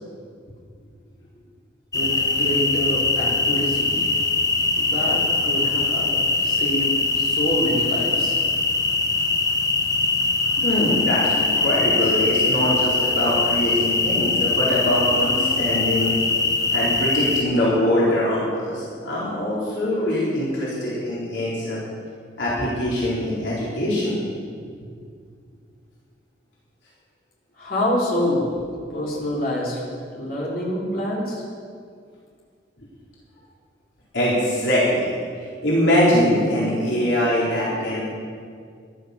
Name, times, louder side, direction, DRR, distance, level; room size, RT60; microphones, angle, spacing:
voice 1, 1.9-4.1 4.8-8.4 27.6-28.6 28.9-29.8 30.1-31.4, equal, 50° left, -5 dB, 3.6 m, -26 dB
sound 1, 1.9-17.4, left 3 dB, 20° left, 0.9 m, -22 dB
voice 2, 10.6-16.1 16.7-21.8 22.4-24.2 24.8-24.9 34.1-35.0 35.6-38.0, left 1 dB, 75° left, -7 dB, 4.0 m, -22 dB
14.5 x 12.0 x 6.8 m, 2.1 s
head